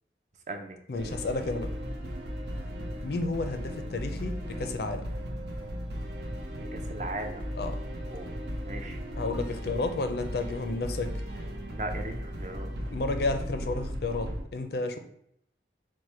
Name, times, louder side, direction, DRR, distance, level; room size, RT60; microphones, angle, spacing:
voice 1, 0.9-1.7 3.0-5.0 7.5-7.8 9.1-11.1 12.9-15.0, left 3 dB, 65° left, 7 dB, 0.5 m, -31 dB
sound 1, 1.0-14.4, equal, 75° right, 0.8 m, -36 dB
voice 2, 6.7-7.4 8.1-8.3 8.6-9.0 11.7-12.7, right 2 dB, 40° right, 4 dB, 0.5 m, -37 dB
4.8 x 2.2 x 4.2 m, 0.70 s
head